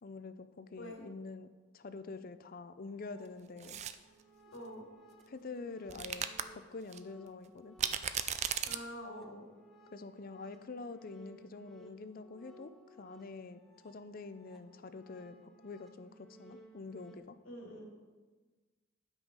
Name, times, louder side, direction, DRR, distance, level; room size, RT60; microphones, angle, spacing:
voice 1, 0.0-1.5 1.7-3.8 5.3-6.3 6.5-7.8 9.9-17.4, left 3 dB, 45° left, 11 dB, 0.5 m, -46 dB
sound 1, 2.8-17.2, right 2 dB, ahead, 0.9 m, -60 dB
sound 2, 3.6-3.9 5.9-6.4 6.9-7.0 7.8-8.8, right 9 dB, 35° right, 0.4 m, -35 dB
voice 2, 4.5-4.9 8.6-9.5 17.4-17.9, equal, 85° left, -1 dB, 2.7 m, -46 dB
9.8 x 6.1 x 5.4 m, 1.3 s
head